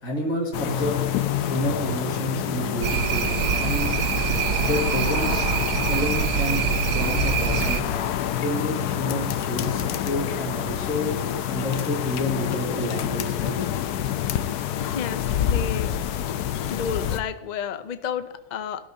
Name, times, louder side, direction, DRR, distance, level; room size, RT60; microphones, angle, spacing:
voice 1, 0.0-4.0 4.6-5.5 5.9-6.6 6.9-11.1 11.5-13.6, equal, 55° left, -4 dB, 2.2 m, -29 dB
sound 1, 0.5-17.2, left 10 dB, 90° left, 1.2 m, -27 dB
sound 2, 2.8-7.8, right 10 dB, 80° right, 1.2 m, -25 dB
voice 2, 14.8-15.9 16.7-18.9, left 7 dB, 75° left, 11 dB, 0.4 m, -31 dB
18.5 x 12.5 x 2.7 m, 1.1 s
omnidirectional pair, 1.6 m